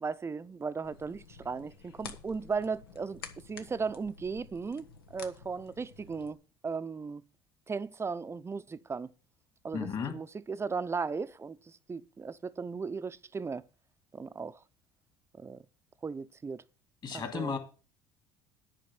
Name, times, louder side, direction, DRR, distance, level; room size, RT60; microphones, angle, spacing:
voice 1, 0.0-3.2 3.5-4.8 5.1-7.2 7.7-9.1 9.6-13.6 14.1-14.6 15.4-15.6 16.0-16.6 17.1-17.6, right 5 dB, 20° right, 0.7 m, -36 dB
sound 1, 0.8-6.3, left 5 dB, 90° left, 1.1 m, -50 dB
voice 2, 9.7-10.1 17.0-17.6, left 6 dB, 40° left, 2.6 m, -34 dB
10.5 x 5.1 x 7.8 m
hypercardioid pair, 70°, 12 cm